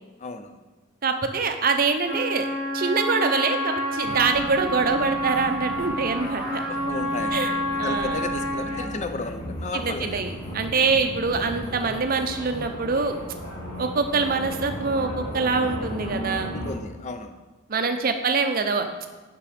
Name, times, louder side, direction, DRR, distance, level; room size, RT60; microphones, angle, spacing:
voice 1, 0.2-0.6 6.7-7.4 7.8-10.3 10.8-10.9 16.5-17.4, left 3 dB, 30° left, 8 dB, 0.4 m, -33 dB
voice 2, 1.0-2.5 2.7-6.6 7.3-7.5 7.8-8.2 9.7-13.1 13.8-16.5 17.7-18.9, right 4 dB, 40° right, 7 dB, 0.5 m, -24 dB
Trumpet, 2.0-9.0, equal, 10° right, 2.1 m, -29 dB
sound 1, 4.0-16.7, equal, 90° left, 2.6 m, -36 dB
6.0 x 5.9 x 5.0 m, 1.2 s
head